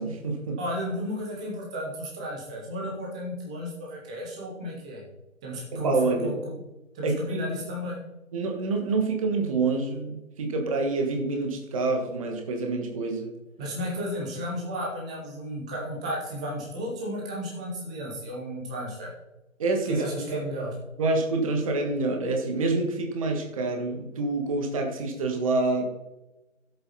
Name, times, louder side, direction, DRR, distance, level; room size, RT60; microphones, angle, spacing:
voice 1, 0.0-0.6 5.7-6.3 7.0-7.5 8.3-13.3 19.6-20.0 20.3-20.4 21.0-25.9, right 3 dB, 25° right, 3 dB, 1.5 m, -27 dB
voice 2, 0.6-5.0 5.4-6.6 6.9-8.0 13.6-19.1 19.9-20.7, equal, 5° right, -2 dB, 0.8 m, -33 dB
14.5 x 8.2 x 4.2 m, 1.0 s
figure-of-eight pair, 155°, 40 cm